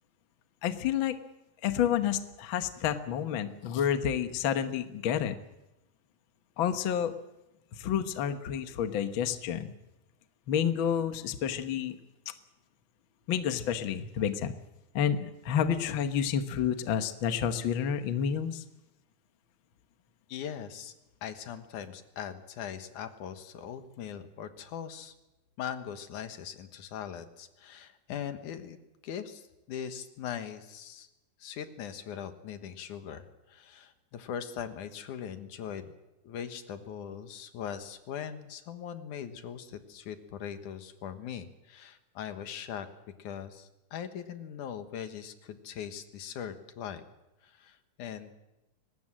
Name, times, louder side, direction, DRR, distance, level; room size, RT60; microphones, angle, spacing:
voice 1, 0.6-1.2 1.6-5.3 6.6-7.1 7.7-9.7 10.5-12.0 13.3-14.5 14.9-18.6, left 8 dB, 55° left, 8 dB, 1.5 m, -29 dB
voice 2, 20.3-20.9 21.2-25.1 25.6-28.8 29.0-29.4 29.7-31.1 31.4-35.9 36.2-42.9 43.2-47.0 47.6-48.3, left 8 dB, 80° left, 9 dB, 2.8 m, -40 dB
23.0 x 19.5 x 7.6 m, 0.95 s
omnidirectional pair, 3.5 m